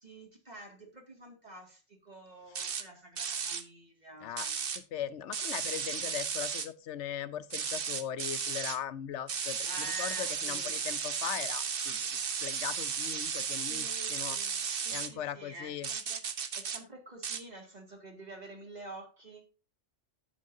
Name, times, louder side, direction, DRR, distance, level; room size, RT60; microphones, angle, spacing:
voice 1, 0.0-4.7 9.6-10.8 13.6-16.2 16.5-19.5, right 2 dB, 35° right, 2.2 m, -48 dB
sound 1, 2.5-2.8 3.2-3.6 4.4-4.8 5.3-6.7 7.5-8.8 9.3-15.1 15.8-16.8 17.2-17.4, right 6 dB, 50° right, 1.0 m, -34 dB
voice 2, 4.7-14.4 14.9-15.9, left 9 dB, 75° left, 0.9 m, -39 dB
11.0 x 8.4 x 2.7 m
omnidirectional pair, 1.3 m